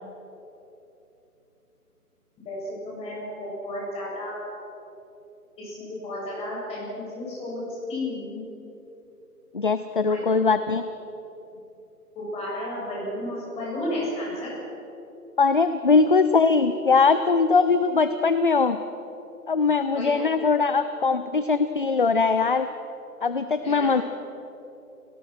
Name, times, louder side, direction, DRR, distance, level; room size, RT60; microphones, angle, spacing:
voice 1, 2.4-4.4 5.6-7.6 7.9-8.4 10.1-10.2 12.1-14.5 19.9-20.2 23.6-24.0, left 1 dB, 15° left, -6 dB, 7.4 m, -33 dB
voice 2, 9.5-10.8 15.4-18.8 19.5-22.7 23.2-24.0, left 4 dB, 35° left, 11 dB, 0.5 m, -21 dB
30.0 x 18.0 x 6.1 m, 3.0 s
figure-of-eight pair, 145°, 47 cm